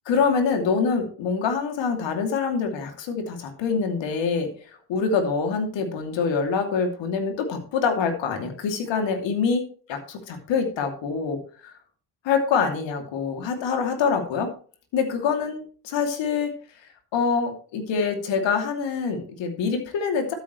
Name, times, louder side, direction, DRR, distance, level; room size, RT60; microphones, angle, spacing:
voice 1, 0.1-4.5 4.9-11.7 12.2-14.5 14.9-16.5 17.1-20.3, left 5 dB, 75° left, 5 dB, 2.8 m, -25 dB
12.5 x 9.5 x 3.2 m, 0.40 s
hypercardioid pair, 50°, 45 cm